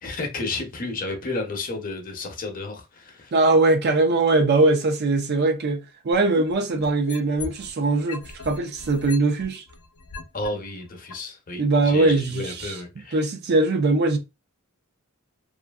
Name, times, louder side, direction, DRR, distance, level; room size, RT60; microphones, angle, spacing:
voice 1, 0.0-3.3 10.3-13.3, left 2 dB, 40° left, 0.7 m, -32 dB
voice 2, 3.3-9.6 11.6-12.7 13.1-14.2, right 2 dB, 50° right, 0.4 m, -21 dB
sound 1, 6.1-7.7 8.1-10.5 11.1-11.2, left 4 dB, 85° left, 0.6 m, -38 dB
2.6 x 2.5 x 2.3 m
head